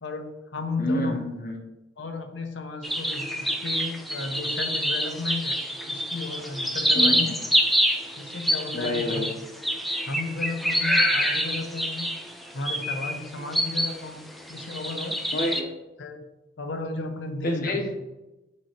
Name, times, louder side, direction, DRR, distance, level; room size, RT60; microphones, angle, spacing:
voice 1, 0.0-1.2 2.0-5.6 5.9-7.4 8.2-9.2 10.0-12.1 12.5-14.2 14.5-15.2 16.0-16.3 16.6-17.8, left 3 dB, 85° left, 6 dB, 0.9 m, -34 dB
voice 2, 0.8-1.6 6.9-7.5 8.7-9.3 15.3-15.7 17.4-18.0, left 1 dB, 50° left, 3 dB, 1.0 m, -28 dB
sound 1, 2.8-14.0 14.4-15.6, equal, ahead, 0.5 m, -26 dB
8.6 x 3.1 x 4.4 m, 1.0 s
head